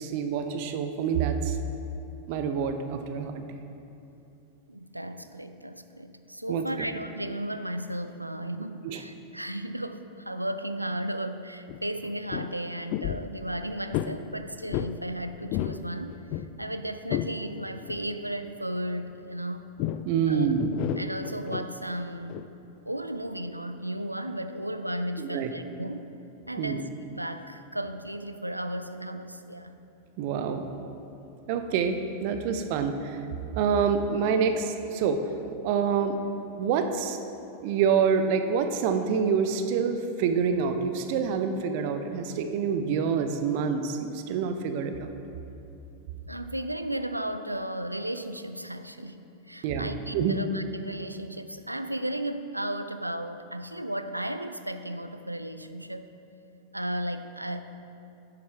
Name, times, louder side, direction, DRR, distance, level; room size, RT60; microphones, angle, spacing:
voice 1, 0.0-1.6 2.3-3.4 6.5-6.9 8.8-9.0 20.0-20.6 25.2-25.5 26.6-26.8 30.2-30.7 31.5-33.2 33.5-35.2 35.6-36.2 36.6-37.2 37.6-45.1 49.6-50.4, right 6 dB, 45° right, 7 dB, 0.7 m, -27 dB
voice 2, 4.7-19.7 20.3-20.5 21.0-22.5 22.8-26.1 26.5-29.8 46.3-49.2 49.5-56.1 56.7-57.6, right 1 dB, 85° right, 10 dB, 0.4 m, -34 dB
sound 1, 11.7-11.8 12.0-12.5 12.9-13.3 13.9-14.2 14.7-15.0 15.3-15.8 16.1-17.3 17.9-18.1 19.8-20.1 20.6-21.7 22.3-22.5, left 12 dB, 45° left, 0.3 m, -31 dB
11.0 x 9.6 x 3.3 m, 2.8 s
figure-of-eight pair, 90°, 0 cm